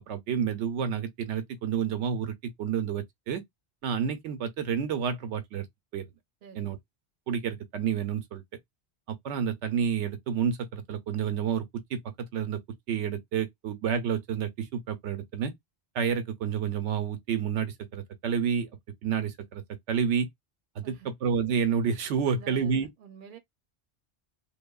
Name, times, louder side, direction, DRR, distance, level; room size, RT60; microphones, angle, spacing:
voice 1, 0.1-3.4 3.8-5.7 5.9-6.1 6.6-6.8 7.3-8.4 9.1-11.7 11.9-12.6 12.9-15.5 15.9-18.7 19.0-20.3 20.8-22.9, right 7 dB, 85° right, 0.9 m, -29 dB
voice 2, 6.4-6.8 20.8-21.1 22.3-23.4, right 6 dB, 55° right, 0.7 m, -49 dB
2.9 x 2.1 x 2.2 m
omnidirectional pair, 1.2 m